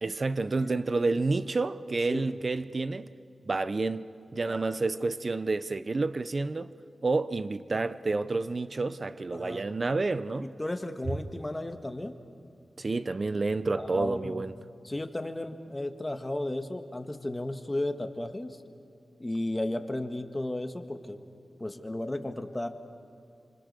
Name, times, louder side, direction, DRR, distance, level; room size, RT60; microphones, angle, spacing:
voice 1, 0.0-3.1 3.4-6.7 7.0-10.5 12.8-14.5, right 3 dB, 45° right, 0.8 m, -29 dB
voice 2, 9.3-9.7 10.4-12.2 13.8-14.5 14.8-18.6 19.2-21.2 21.6-22.7, left 1 dB, 15° left, 1.6 m, -34 dB
28.5 x 25.5 x 6.8 m
wide cardioid pair, 105°, 0 cm